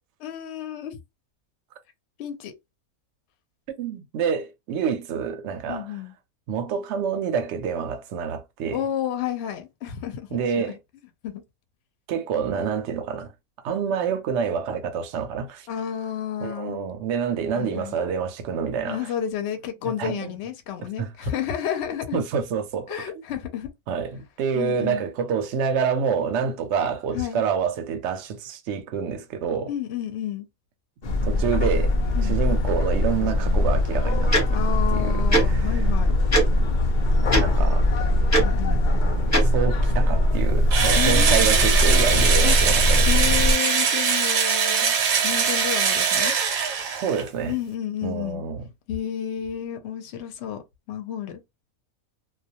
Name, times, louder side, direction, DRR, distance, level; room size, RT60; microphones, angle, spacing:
voice 1, 0.2-1.0 2.2-2.5 5.7-6.1 8.7-10.5 11.2-11.4 15.7-16.8 17.6-18.0 18.9-22.2 22.9-23.7 24.5-25.0 27.1-27.4 29.7-30.5 32.1-32.4 34.5-36.2 38.3-38.8 41.0-42.6 43.1-44.9 45.2-46.3 47.5-48.4 48.9-50.6 50.9-51.4, left 10 dB, 65° left, 0.7 m, -31 dB
voice 2, 3.8-5.9 6.5-8.8 10.3-10.8 12.1-13.3 13.6-15.7 16.4-19.1 19.8-20.4 21.0-21.3 22.1-23.0 23.9-29.7 31.2-34.6 34.9-35.8 37.4-37.8 39.4-43.1 46.9-47.6 48.0-48.6, right 6 dB, 65° right, 0.8 m, -27 dB
sound 1, 31.0-43.5, left 1 dB, 80° left, 0.4 m, -21 dB
Tick-tock, 34.3-34.4 35.3-35.4 36.3-36.4 37.3-37.4 38.3-38.4 39.3-39.4, right 1 dB, 15° left, 0.8 m, -19 dB
Engine / Drill, 40.7-47.3, right 6 dB, 85° right, 1.1 m, -22 dB
2.3 x 2.2 x 2.7 m
omnidirectional pair, 1.5 m